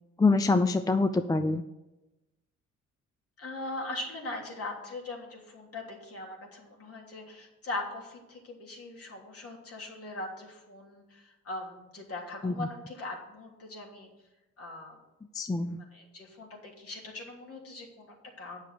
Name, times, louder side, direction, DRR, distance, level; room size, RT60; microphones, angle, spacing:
voice 1, 0.2-1.6 12.4-12.7 15.3-15.8, left 3 dB, 10° left, 10 dB, 0.5 m, -25 dB
voice 2, 3.4-14.1 14.6-15.0 15.8-18.6, left 2 dB, 50° left, 0 dB, 3.1 m, -40 dB
8.7 x 6.4 x 6.7 m, 0.99 s
cardioid pair, 90°, 30 cm